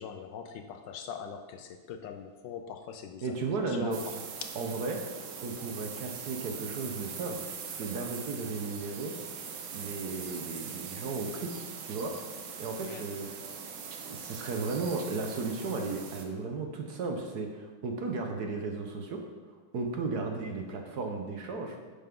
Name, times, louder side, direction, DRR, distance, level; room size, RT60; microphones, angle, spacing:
voice 1, 0.0-4.5 12.8-13.0, left 7 dB, 75° left, 7 dB, 1.2 m, -42 dB
voice 2, 3.2-4.0 4.6-5.0 5.4-9.1 9.7-12.1 12.6-13.3 14.1-19.2 19.7-21.8, right 3 dB, 60° right, 3 dB, 1.2 m, -35 dB
sound 1, 3.9-16.2, right 6 dB, 80° right, 1.7 m, -42 dB
10.0 x 7.0 x 3.8 m, 1.4 s
omnidirectional pair, 2.2 m